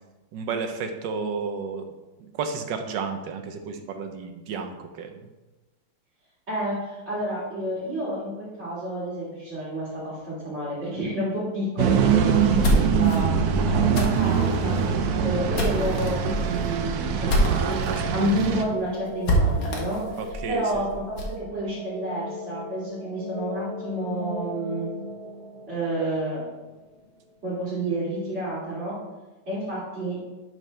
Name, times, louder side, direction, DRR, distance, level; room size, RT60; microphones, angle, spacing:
voice 1, 0.3-1.8 2.2-5.1 20.2-20.6, right 5 dB, 70° right, 6 dB, 1.2 m, -32 dB
voice 2, 6.5-13.3 13.6-14.8 15.2-17.3 18.1-20.0 20.5-24.9 25.7-26.5 27.4-29.0 29.5-30.2, right 1 dB, 30° right, -10 dB, 2.1 m, -30 dB
sound 1, 11.8-18.6, right 7 dB, 90° right, 0.8 m, -23 dB
sound 2, 12.3-18.0 18.4-18.5 18.7-18.8 19.2-21.4, equal, 60° left, 1.7 m, -26 dB
sound 3, 12.7-27.4, right 1 dB, 30° left, 1.0 m, -39 dB
11.0 x 4.4 x 3.3 m, 1.1 s
omnidirectional pair, 2.3 m